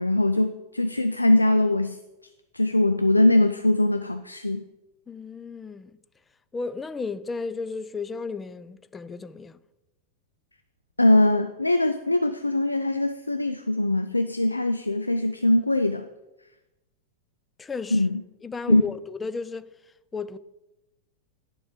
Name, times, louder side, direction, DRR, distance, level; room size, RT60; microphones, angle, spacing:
voice 1, 0.0-2.0 2.5-4.6 11.0-16.1 17.9-18.2 18.7-18.8, left 1 dB, 85° left, 0.4 m, -22 dB
voice 2, 5.1-6.0 6.5-9.6 17.6-18.1 18.4-19.7 20.1-20.4, left 4 dB, 15° left, 0.4 m, -34 dB
10.5 x 7.0 x 5.0 m
figure-of-eight pair, 90°, 0 cm